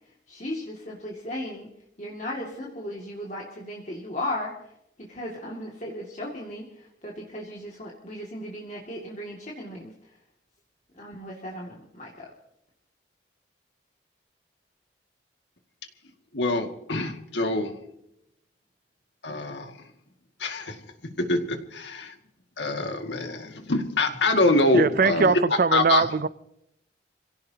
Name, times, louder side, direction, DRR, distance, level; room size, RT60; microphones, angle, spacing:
voice 1, 0.3-1.7 2.0-4.5 5.0-10.1 10.9-12.3, left 1 dB, 40° left, 2.3 m, -36 dB
voice 2, 16.3-17.8 19.2-19.9 20.4-22.2 22.6-26.1, left 2 dB, 75° left, 2.1 m, -25 dB
voice 3, 24.7-26.3, right 4 dB, 50° right, 0.5 m, -21 dB
27.5 x 17.0 x 2.9 m
head